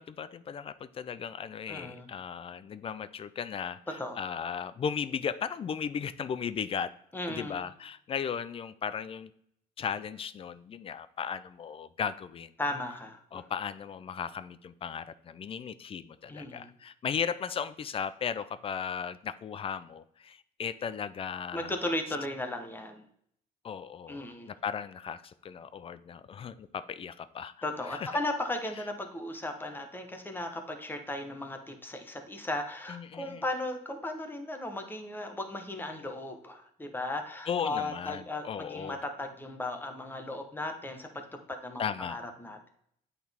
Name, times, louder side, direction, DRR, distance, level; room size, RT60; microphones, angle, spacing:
voice 1, 0.0-6.9 7.3-9.3 9.8-12.5 13.3-21.7 23.6-27.5 27.8-28.0 32.9-33.4 37.5-39.0 41.8-42.2, left 7 dB, 35° left, 15 dB, 0.4 m, -36 dB
voice 2, 1.7-2.1 4.0-4.2 7.1-7.7 12.6-13.4 16.3-16.7 21.5-23.0 24.1-24.5 27.6-42.7, left 1 dB, 10° left, 5 dB, 1.1 m, -36 dB
8.5 x 4.0 x 3.5 m, 0.69 s
cardioid pair, 110°, 17 cm